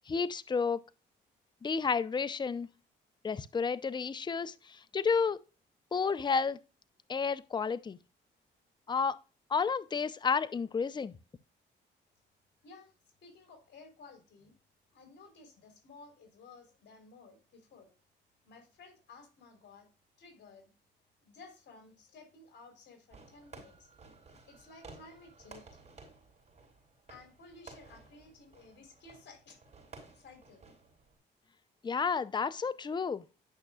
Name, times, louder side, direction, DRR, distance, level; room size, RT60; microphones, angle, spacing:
voice 1, 0.1-0.8 1.6-2.7 3.2-5.4 5.9-6.6 7.1-8.0 8.9-9.2 9.5-11.1 31.8-33.2, left 5 dB, 20° left, 0.5 m, -31 dB
voice 2, 13.2-14.5 14.9-17.9 18.4-19.9 20.2-20.7 21.2-23.9 24.5-25.7 27.1-29.6 30.1-30.6, left 3 dB, 60° left, 3.6 m, -55 dB
Fireworks, 23.1-31.2, right 3 dB, 35° right, 4.8 m, -55 dB
11.0 x 6.0 x 2.2 m
cardioid pair, 90°, 20 cm